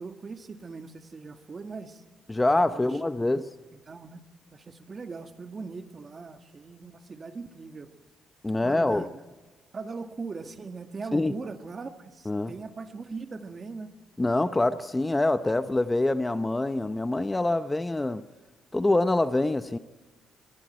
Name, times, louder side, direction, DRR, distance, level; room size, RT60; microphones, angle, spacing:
voice 1, 0.0-2.0 2.7-3.0 3.7-4.2 4.5-7.9 8.6-9.2 9.7-13.9, right 4 dB, 35° right, 1.9 m, -40 dB
voice 2, 2.3-3.5 8.4-9.0 11.1-11.3 12.3-12.5 14.2-18.2 18.7-19.8, left 2 dB, 15° left, 0.9 m, -25 dB
27.0 x 21.5 x 4.5 m
cardioid pair, 90°, 0 cm